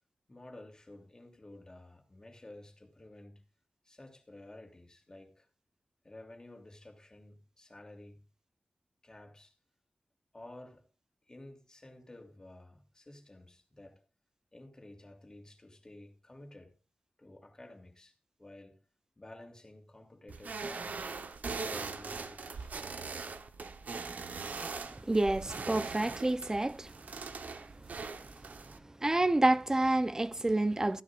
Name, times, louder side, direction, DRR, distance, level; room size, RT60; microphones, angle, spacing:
voice 1, 0.3-3.4 3.8-5.5 6.0-8.2 9.0-9.6 10.3-10.9 11.3-14.0 14.5-16.8 17.2-18.8 19.2-21.1 21.5-22.7, left 1 dB, 25° left, 2.9 m, -52 dB
sound 1, 20.3-28.8, right 4 dB, 75° right, 1.0 m, -41 dB
voice 2, 24.9-26.9 28.7-31.0, right 2 dB, 20° right, 0.7 m, -29 dB
15.5 x 11.0 x 2.5 m
wide cardioid pair, 80°, 3 cm